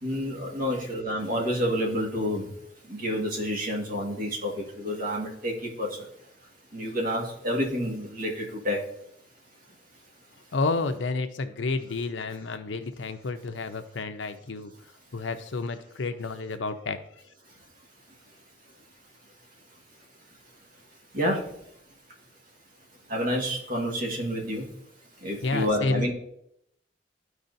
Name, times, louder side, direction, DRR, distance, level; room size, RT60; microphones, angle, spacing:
voice 1, 0.0-2.5 2.8-6.1 6.7-8.8 21.1-21.5 23.1-24.7 25.2-26.1, equal, 50° right, 0 dB, 1.8 m, -29 dB
voice 2, 10.5-14.7 15.1-17.0 25.4-26.1, left 3 dB, 90° left, 8 dB, 0.7 m, -30 dB
13.0 x 4.8 x 2.7 m, 0.75 s
head